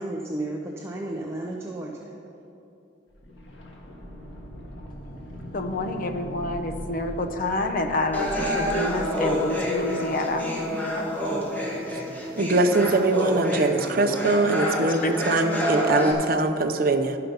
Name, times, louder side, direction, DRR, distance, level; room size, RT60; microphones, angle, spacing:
voice 1, 0.0-2.2, right 1 dB, 15° right, -1 dB, 0.7 m, -33 dB
sound 1, 3.1-10.9 11.2-11.3, equal, 85° left, 1.3 m, -40 dB
voice 2, 5.5-10.5 14.9-15.1, left 2 dB, 50° left, 5 dB, 0.7 m, -28 dB
sound 2, 8.1-16.1, equal, 10° left, 1.4 m, -27 dB
voice 3, 12.4-17.2, right 2 dB, 55° right, 8 dB, 0.6 m, -22 dB
12.0 x 5.8 x 5.3 m, 2.8 s
head